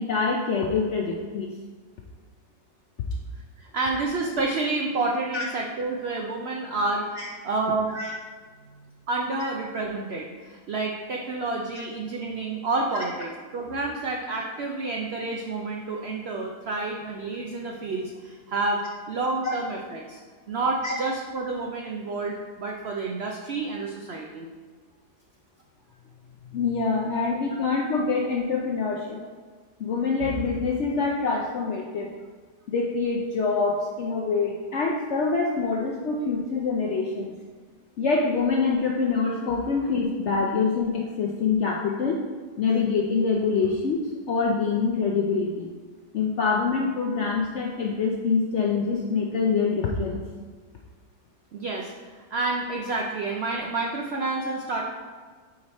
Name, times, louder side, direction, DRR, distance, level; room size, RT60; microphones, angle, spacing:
voice 1, 0.0-1.5 5.3-5.4 7.2-7.3 7.9-8.2 12.9-13.1 19.4-19.6 20.8-20.9 26.4-29.2 29.8-32.1 32.7-37.3 38.0-42.2 42.6-44.0 44.3-45.7 46.1-50.2 54.4-54.5, left 4 dB, 70° left, -1 dB, 0.6 m, -25 dB
voice 2, 3.6-7.9 9.1-18.8 19.1-20.2 20.5-24.5 27.2-27.3 27.6-27.7 51.5-54.8, right 3 dB, 75° right, 0 dB, 0.5 m, -29 dB
4.9 x 4.7 x 4.1 m, 1.5 s
omnidirectional pair, 1.7 m